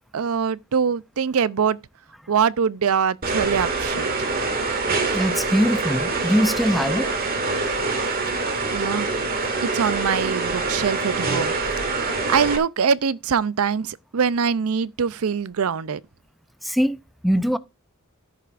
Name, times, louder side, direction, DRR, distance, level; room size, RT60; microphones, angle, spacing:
voice 1, 0.1-1.8 2.3-4.3 8.7-9.1 9.6-11.6 12.3-16.0, right 6 dB, 75° right, 0.5 m, -23 dB
sound 1, 3.2-12.6, right 3 dB, 45° right, 1.9 m, -25 dB
voice 2, 5.1-7.1 16.6-17.6, equal, ahead, 0.5 m, -22 dB
13.0 x 10.0 x 2.5 m
head